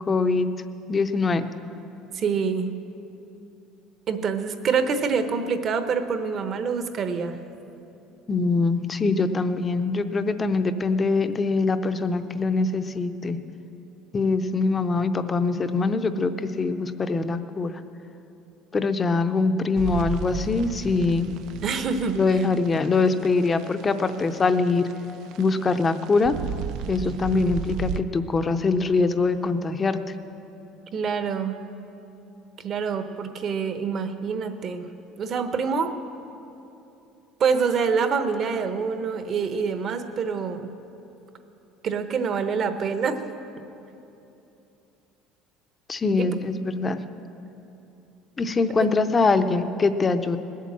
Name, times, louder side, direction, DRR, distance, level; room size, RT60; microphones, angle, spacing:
voice 1, 0.1-0.5 0.9-1.5 8.3-13.4 14.1-17.8 18.7-21.3 22.1-24.9 25.4-26.4 26.9-30.0 45.9-47.0 48.4-50.4, left 3 dB, 20° left, 10 dB, 0.6 m, -23 dB
voice 2, 2.1-2.7 4.1-7.4 21.6-22.4 30.9-31.6 32.6-34.9 35.2-35.9 37.4-40.7 41.8-43.2 46.2-46.3 48.8-48.9, right 5 dB, 35° right, 9 dB, 0.9 m, -26 dB
sound 1, 19.8-28.0, right 7 dB, 60° right, 0.4 m, -34 dB
19.5 x 8.4 x 7.4 m, 2.9 s
cardioid pair, 150°, 0 cm